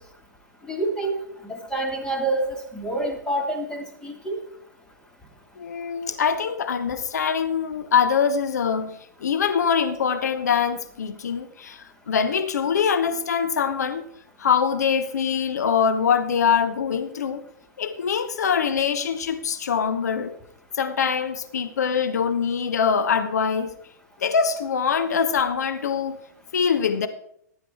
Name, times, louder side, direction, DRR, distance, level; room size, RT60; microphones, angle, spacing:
voice 1, 0.7-1.1 1.4-4.4, right 2 dB, 10° left, 2.7 m, -27 dB
voice 2, 5.6-14.0 14.4-17.4 17.8-20.4 20.7-23.7 24.2-26.2 26.5-27.1, left 6 dB, 60° left, 1.0 m, -23 dB
15.5 x 10.0 x 4.5 m
figure-of-eight pair, 110°, 10 cm